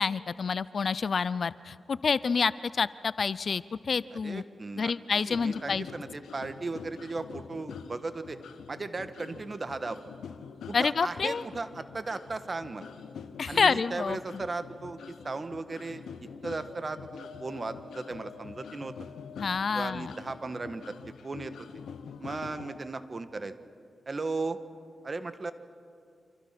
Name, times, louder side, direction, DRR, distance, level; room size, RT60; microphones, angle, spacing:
voice 1, 0.0-4.4 4.8-5.9 10.7-11.4 13.4-14.2 19.4-20.1, left 5 dB, 60° left, 18 dB, 0.5 m, -28 dB
voice 2, 4.1-8.4 8.7-10.0 10.7-12.9 13.5-16.0 16.4-17.0 17.4-18.9 19.7-20.9 21.2-21.7 22.2-23.5 24.1-24.6 25.0-25.5, right 3 dB, 40° right, 10 dB, 1.6 m, -36 dB
sound 1, 5.3-22.8, left 6 dB, 85° left, 1.1 m, -46 dB
28.0 x 26.0 x 6.0 m, 2.4 s
cardioid pair, 55°, 0 cm